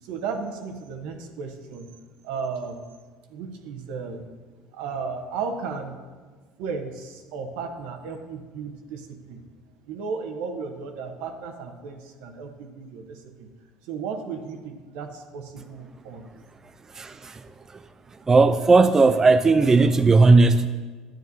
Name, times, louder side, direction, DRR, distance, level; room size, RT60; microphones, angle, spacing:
voice 1, 0.0-1.9 2.2-2.8 3.3-4.3 4.7-6.0 6.6-9.4 9.9-13.5 13.9-16.3, right 5 dB, 75° right, 5 dB, 1.0 m, -34 dB
voice 2, 16.9-17.4 18.3-20.7, right 3 dB, 25° right, 10 dB, 0.3 m, -16 dB
10.5 x 8.9 x 2.7 m, 1.4 s
supercardioid pair, 85°, 2 cm